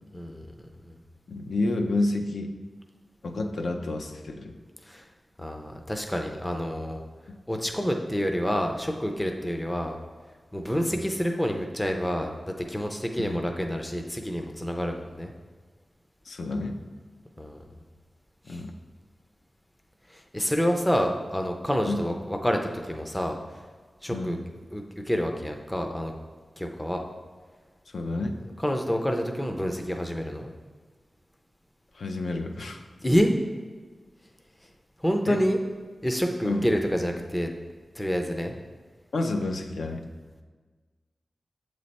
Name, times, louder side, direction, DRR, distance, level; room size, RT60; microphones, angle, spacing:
voice 1, 0.1-0.5 4.9-5.0 5.4-7.0 7.5-10.0 10.5-12.3 12.6-15.3 17.4-17.6 18.5-18.6 20.1-22.6 22.9-23.4 24.0-24.4 24.7-26.1 26.6-27.0 28.6-30.5 33.0-33.4 35.0-35.6 36.0-37.5 38.0-38.5, equal, 10° left, 3 dB, 0.4 m, -28 dB
voice 2, 1.3-2.5 3.2-4.5 7.3-7.4 10.7-10.9 13.2-13.4 16.2-16.8 18.5-18.7 21.9-22.0 24.1-24.4 27.9-28.4 31.9-32.8 35.3-35.4 36.4-36.7 39.1-40.0, left 2 dB, 85° left, 4 dB, 0.5 m, -30 dB
7.6 x 3.2 x 4.0 m, 1.4 s
wide cardioid pair, 125°, 0 cm